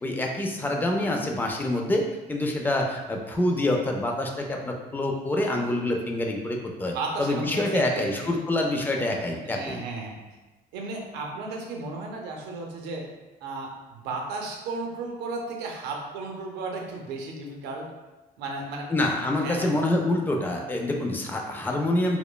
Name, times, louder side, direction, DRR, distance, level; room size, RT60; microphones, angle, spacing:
voice 1, 0.0-2.0 2.3-9.8 18.9-22.2, left 1 dB, 10° left, 1 dB, 0.3 m, -26 dB
voice 2, 6.9-8.2 9.5-10.1 10.7-13.1 13.4-17.9 18.4-18.9 19.4-19.8, right 3 dB, 85° right, 1 dB, 0.5 m, -34 dB
2.9 x 2.1 x 2.2 m, 1.1 s
cardioid pair, 110°, 17 cm